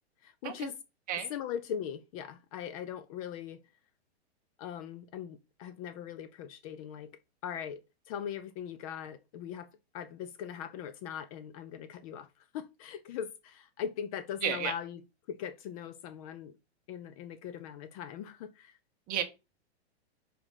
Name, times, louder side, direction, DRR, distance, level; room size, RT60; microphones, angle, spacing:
voice 1, 0.2-0.8 1.3-3.6 4.6-15.0 15.3-16.5 16.9-18.8, left 9 dB, 35° left, 0.5 m, -40 dB
voice 2, 14.4-14.7 19.1-19.2, right 9 dB, 25° right, 1.2 m, -32 dB
4.9 x 4.9 x 5.7 m
hypercardioid pair, 150°, 33 cm